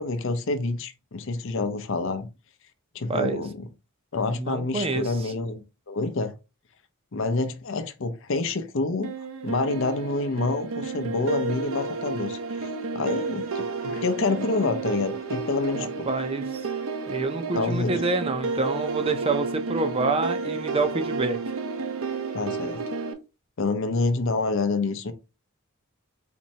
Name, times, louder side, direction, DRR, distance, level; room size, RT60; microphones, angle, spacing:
voice 1, 0.0-2.3 2.9-3.6 4.1-6.3 7.1-9.1 9.4-16.1 17.5-18.0 22.3-22.8 23.6-25.1, left 3 dB, 60° left, 0.6 m, -27 dB
voice 2, 3.1-3.4 4.3-5.3 15.8-16.6 17.1-21.4, right 3 dB, 25° right, 0.5 m, -27 dB
sound 1, 9.0-23.1, right 4 dB, 75° right, 0.6 m, -31 dB
4.3 x 3.1 x 2.8 m
head